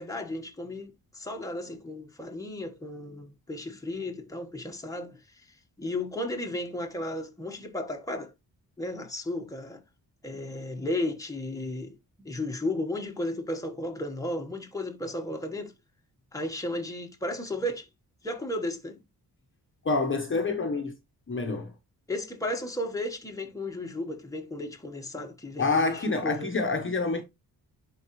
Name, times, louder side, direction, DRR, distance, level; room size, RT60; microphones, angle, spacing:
voice 1, 0.0-5.5 5.8-8.3 8.8-9.8 10.2-15.7 16.3-17.9 18.2-19.0 22.1-26.5, left 1 dB, 10° left, 1.3 m, -34 dB
voice 2, 19.8-20.9 21.3-21.7 25.6-27.2, left 3 dB, 35° left, 1.0 m, -27 dB
10.5 x 3.9 x 3.1 m
wide cardioid pair, 125°, 37 cm